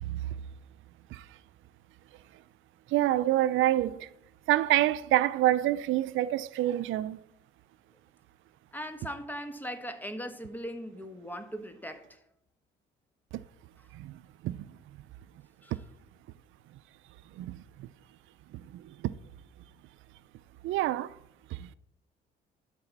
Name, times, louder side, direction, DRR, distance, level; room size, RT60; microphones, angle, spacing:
voice 1, 2.9-4.1 4.5-7.2 13.9-14.1 14.4-14.6 15.7-15.8 17.4-17.6 18.7-19.1 20.6-21.2 21.5-21.7, right 14 dB, 85° right, 0.5 m, -27 dB
voice 2, 8.7-12.2 13.8-13.9 15.6-15.8, equal, 10° left, 1.4 m, -39 dB
12.0 x 4.9 x 7.2 m
cardioid pair, 90°, 20 cm